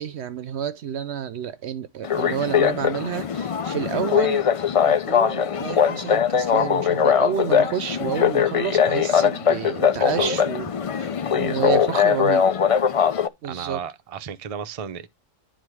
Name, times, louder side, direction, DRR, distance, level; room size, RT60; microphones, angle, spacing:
voice 1, 0.0-4.5 4.8-10.7 11.0-12.5 13.4-13.8, right 8 dB, 65° right, 0.9 m, -30 dB
sound 1, 2.0-13.3, left 7 dB, 65° left, 0.3 m, -21 dB
voice 2, 9.9-10.4 13.4-15.1, right 7 dB, 35° right, 0.6 m, -34 dB
9.8 x 4.0 x 4.8 m
omnidirectional pair, 1.3 m